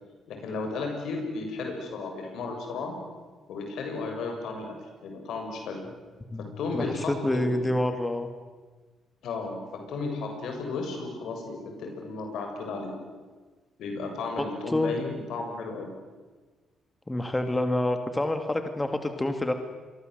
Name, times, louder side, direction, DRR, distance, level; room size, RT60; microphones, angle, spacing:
voice 1, 0.3-3.0 3.5-4.7 5.0-5.8 6.4-7.6 9.2-12.9 13.8-15.9, left 3 dB, 75° left, 3 dB, 7.3 m, -34 dB
voice 2, 6.7-8.3 14.7-14.9 17.1-19.5, left 1 dB, 15° left, 7 dB, 2.3 m, -27 dB
28.0 x 23.0 x 8.1 m, 1.4 s
cardioid pair, 90°, 0 cm